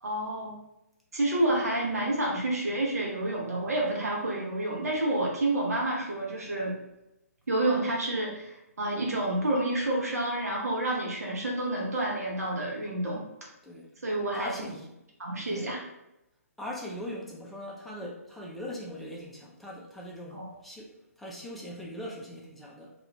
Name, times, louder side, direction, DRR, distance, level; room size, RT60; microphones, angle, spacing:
voice 1, 0.0-0.6 1.1-6.7 7.5-13.3 14.0-14.5 15.2-15.8 20.3-20.4, right 1 dB, 70° right, -2 dB, 0.7 m, -29 dB
voice 2, 14.3-14.9 15.3-15.7 16.6-20.9 21.2-22.9, left 1 dB, ahead, -4 dB, 0.4 m, -40 dB
2.3 x 2.3 x 2.9 m, 0.88 s
figure-of-eight pair, 135°, 9 cm